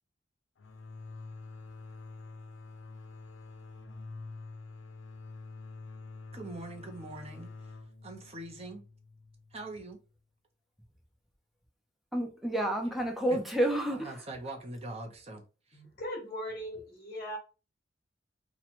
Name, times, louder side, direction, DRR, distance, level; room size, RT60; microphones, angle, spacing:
sound 1, 0.6-10.1, left 3 dB, 90° left, 0.6 m, -47 dB
voice 1, 6.3-7.5 8.0-8.8 9.5-10.0 13.3-13.4 13.9-15.4 15.7-15.8, right 2 dB, 35° right, 0.9 m, -42 dB
voice 2, 12.1-14.1, right 1 dB, ahead, 0.8 m, -29 dB
voice 3, 15.7-17.4, equal, 45° left, 1.3 m, -39 dB
2.9 x 2.5 x 4.2 m
head